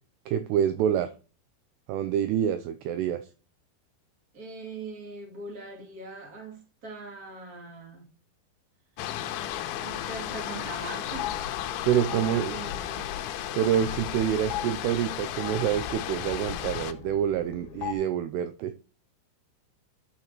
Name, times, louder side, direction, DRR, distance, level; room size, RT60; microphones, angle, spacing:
voice 1, 0.3-1.1 1.9-3.2 11.8-12.6 13.5-18.7, right 10 dB, 85° right, 2.3 m, -27 dB
voice 2, 4.3-8.1 9.0-9.1 9.7-11.4 12.1-13.1, right 3 dB, 25° right, 2.3 m, -41 dB
sound 1, 9.0-16.9, left 11 dB, 90° left, 3.2 m, -34 dB
sound 2, 10.3-17.9, left 9 dB, 65° left, 3.1 m, -41 dB
11.5 x 6.4 x 3.0 m
omnidirectional pair, 5.3 m